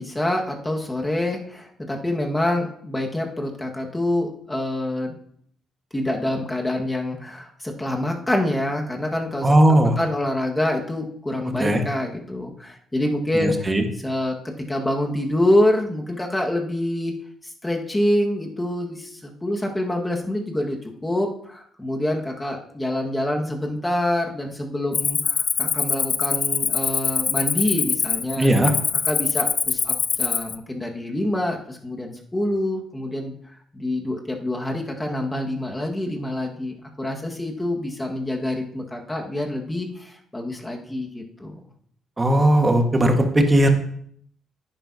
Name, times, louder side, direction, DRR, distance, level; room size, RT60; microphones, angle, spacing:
voice 1, 0.0-5.2 5.9-13.7 14.0-14.4 14.7-17.1 17.4-28.5 29.0-33.4 33.7-41.6, left 1 dB, 15° left, 1 dB, 1.8 m, -26 dB
voice 2, 9.4-9.9 11.6-11.8 13.3-13.8 28.4-28.7 42.2-43.7, right 1 dB, 20° right, 4 dB, 1.7 m, -17 dB
Cricket, 24.9-30.5, left 6 dB, 45° left, 0.5 m, -24 dB
10.0 x 10.0 x 2.9 m, 0.64 s
cardioid pair, 90°, 0 cm